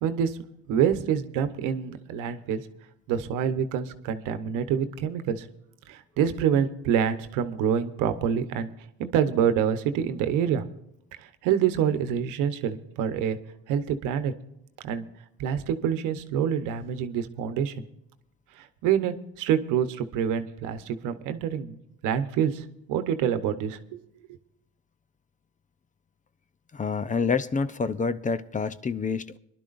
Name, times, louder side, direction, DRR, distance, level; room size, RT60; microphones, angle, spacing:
voice 1, 0.0-0.4 0.7-2.6 3.1-5.5 5.9-8.7 9.0-10.7 11.4-13.4 13.7-14.3 14.8-15.0 15.4-17.8 18.8-21.8 22.0-24.0, right 8 dB, 85° right, 10 dB, 1.1 m, -26 dB
voice 2, 26.7-29.4, left 5 dB, 25° left, 13 dB, 0.7 m, -27 dB
22.5 x 12.0 x 2.6 m, 0.78 s
cardioid pair, 100°, 30 cm